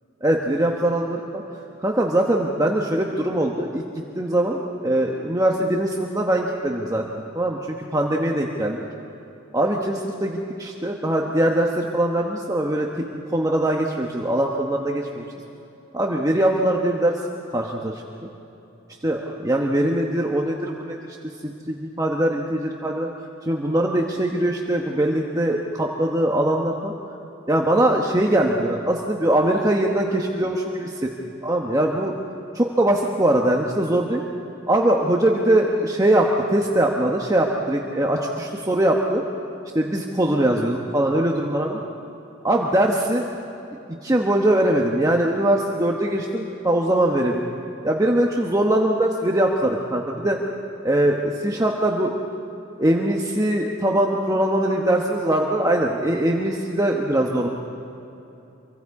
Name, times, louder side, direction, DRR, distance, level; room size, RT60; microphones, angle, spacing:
voice 1, 0.2-1.4 1.8-3.8 4.1-8.8 9.5-13.1 13.3-15.2 15.9-17.2 17.5-18.0 19.0-21.2 21.4-23.1 23.4-26.9 27.5-31.1 31.4-32.1 32.5-34.2 34.7-39.2 39.7-41.8 42.4-43.2 44.0-47.4 47.8-50.4 50.8-52.1 52.8-57.5, right 1 dB, 15° right, 0 dB, 1.1 m, -22 dB
27.0 x 24.0 x 4.8 m, 2.8 s
head